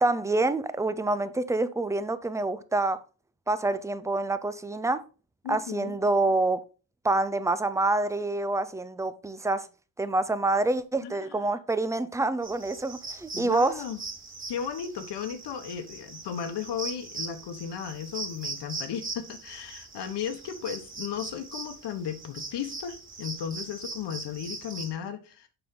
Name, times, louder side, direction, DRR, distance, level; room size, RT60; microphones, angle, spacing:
voice 1, 0.0-3.0 3.5-5.1 5.5-6.6 7.0-9.7 10.0-13.8, right 2 dB, 5° right, 0.4 m, -27 dB
voice 2, 5.4-5.9 11.0-11.4 13.3-14.0 14.5-25.5, left 8 dB, 65° left, 1.2 m, -35 dB
sound 1, 12.4-24.9, right 3 dB, 25° right, 2.0 m, -41 dB
6.9 x 5.4 x 3.7 m
cardioid pair, 125°, 45 cm